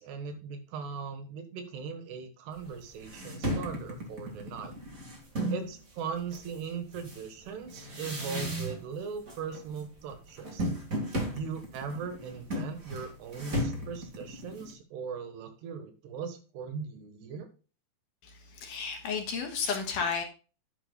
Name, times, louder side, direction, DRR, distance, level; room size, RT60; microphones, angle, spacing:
voice 1, 0.0-4.7 5.5-10.7 11.3-17.5, right 6 dB, 85° right, 7 dB, 3.6 m, -39 dB
sound 1, 2.6-2.7 3.0-5.7 6.3-9.0 9.3-9.8 10.1-14.7, right 1 dB, 35° right, 1.4 m, -35 dB
voice 2, 18.2-20.2, left 5 dB, 65° left, 3 dB, 2.6 m, -32 dB
10.5 x 9.9 x 2.3 m, 0.35 s
omnidirectional pair, 4.7 m